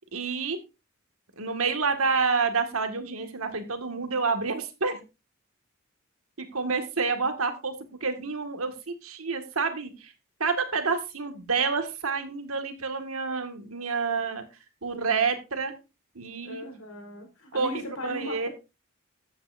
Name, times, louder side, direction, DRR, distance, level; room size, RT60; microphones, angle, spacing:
voice 1, 0.1-0.6 1.4-5.0 6.4-7.7 8.0-10.1 10.4-14.4 14.8-15.7 16.2-16.6 17.5-18.5, right 4 dB, 80° right, 6 dB, 2.1 m, -28 dB
voice 2, 16.4-18.5, equal, 85° left, 3 dB, 4.7 m, -38 dB
14.0 x 9.4 x 2.7 m, 0.27 s
head